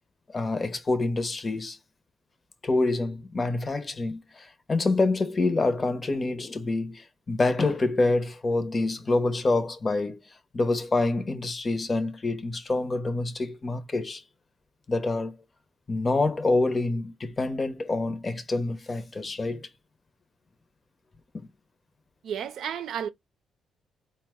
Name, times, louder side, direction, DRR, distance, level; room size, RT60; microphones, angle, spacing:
voice 1, 0.3-1.8 2.6-10.2 10.5-14.2 14.9-15.3 15.9-19.7 21.3-21.5, left 2 dB, 30° left, 0.8 m, -26 dB
voice 2, 22.2-23.1, right 8 dB, 70° right, 0.6 m, -32 dB
3.9 x 2.2 x 3.5 m
cardioid pair, 90°, 0 cm